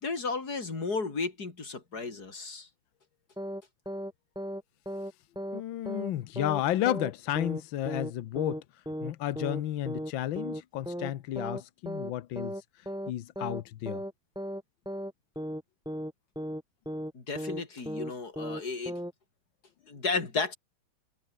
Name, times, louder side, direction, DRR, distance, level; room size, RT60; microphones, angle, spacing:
voice 1, 0.0-2.7 17.1-19.0 19.9-20.5, left 4 dB, 30° left, 3.9 m, -33 dB
sound 1, 3.4-3.6 3.9-4.1 4.4-4.6 4.9-5.1 5.4-5.6 5.9-6.1 6.4-6.6 6.9-7.1 7.4-7.6 7.9-8.1 8.4-8.6 8.9-9.1 9.4-9.6 9.9-10.1 10.4-10.6 10.9-11.1 11.4-11.6 11.9-12.1 12.4-12.6 12.9-13.1 13.4-13.6 13.9-14.1 14.4-14.6 14.9-15.1 15.4-15.6 15.9-16.1 16.4-16.6 16.9-17.1 17.4-17.6 17.9-18.1 18.4-18.6 18.9-19.1, equal, ahead, 7.2 m, -36 dB
voice 2, 5.5-8.6 9.0-12.5 13.1-14.0, left 13 dB, 80° left, 1.0 m, -32 dB
omnidirectional pair, 3.4 m